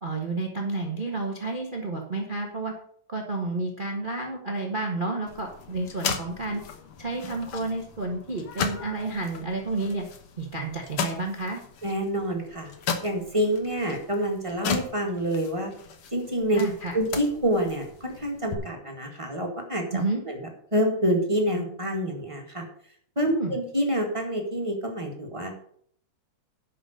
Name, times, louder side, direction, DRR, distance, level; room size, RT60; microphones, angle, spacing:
voice 1, 0.0-2.7 3.1-6.6 7.0-10.0 10.4-11.6 16.5-17.0 19.9-20.2 23.2-23.5, right 3 dB, 85° right, 2 dB, 0.4 m, -30 dB
sound 1, 5.3-18.5, left 6 dB, 55° left, 1.7 m, -36 dB
voice 2, 11.8-12.7 13.0-15.7 16.1-16.6 16.9-20.4 20.7-22.6 23.1-25.5, equal, 15° right, 1 dB, 1.3 m, -27 dB
11.0 x 6.1 x 6.6 m, 0.63 s
omnidirectional pair, 3.7 m